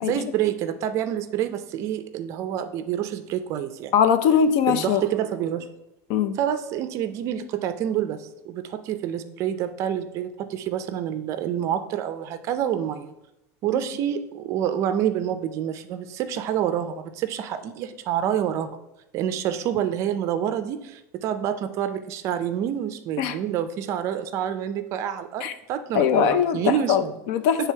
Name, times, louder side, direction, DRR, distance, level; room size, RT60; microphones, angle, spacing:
voice 1, 0.0-3.9 4.7-5.7 6.3-13.1 13.6-18.7 19.1-27.1 27.6-27.7, right 10 dB, 35° right, 10 dB, 0.4 m, -27 dB
voice 2, 3.9-5.0 6.1-6.3 23.2-23.4 25.4-25.5 25.9-26.6 26.9-27.0 27.3-27.7, left 8 dB, 55° left, 11 dB, 0.5 m, -20 dB
9.1 x 3.4 x 4.5 m, 0.88 s
supercardioid pair, 165°, 9 cm